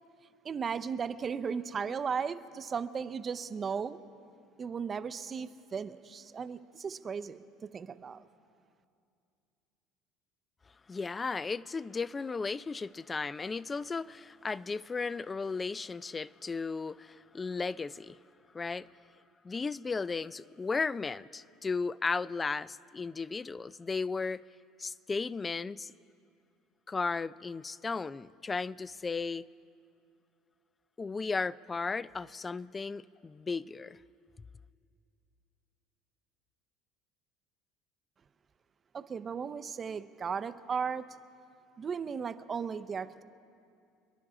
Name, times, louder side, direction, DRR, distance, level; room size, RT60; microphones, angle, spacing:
voice 1, 0.4-4.0 4.6-7.4 7.7-8.3 38.9-41.1 41.8-43.2, right 6 dB, 30° right, 0.6 m, -36 dB
voice 2, 10.9-18.2 18.5-18.9 19.4-24.4 24.8-25.9 26.9-29.4 31.0-34.0, left 4 dB, 20° left, 0.3 m, -35 dB
27.5 x 11.0 x 3.7 m
supercardioid pair, 110°, 0 cm